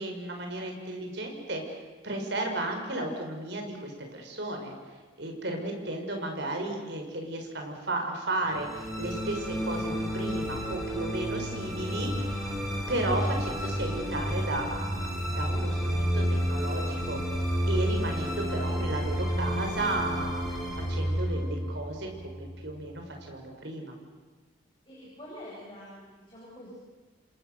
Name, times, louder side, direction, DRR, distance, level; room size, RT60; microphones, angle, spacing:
voice 1, 0.0-4.7 5.2-12.1 12.9-17.2 17.7-23.9, right 2 dB, 60° right, 3 dB, 5.5 m, -34 dB
sound 1, 8.5-22.9, equal, ahead, 5.8 m, -31 dB
voice 2, 24.9-26.7, equal, 25° left, -5 dB, 7.5 m, -46 dB
29.0 x 26.5 x 6.8 m, 1.3 s
head